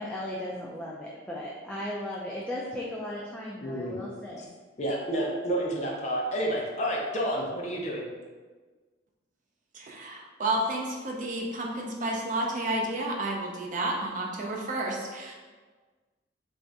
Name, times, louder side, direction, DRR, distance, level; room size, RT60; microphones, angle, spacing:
voice 1, 0.0-4.5, left 1 dB, 5° left, -5 dB, 0.3 m, -36 dB
voice 2, 3.6-3.9 4.4-4.5 4.8-8.1, right 1 dB, 40° left, -2 dB, 0.7 m, -30 dB
voice 3, 9.7-15.3, right 1 dB, 45° right, 0 dB, 0.5 m, -31 dB
3.6 x 2.6 x 3.4 m, 1.4 s
head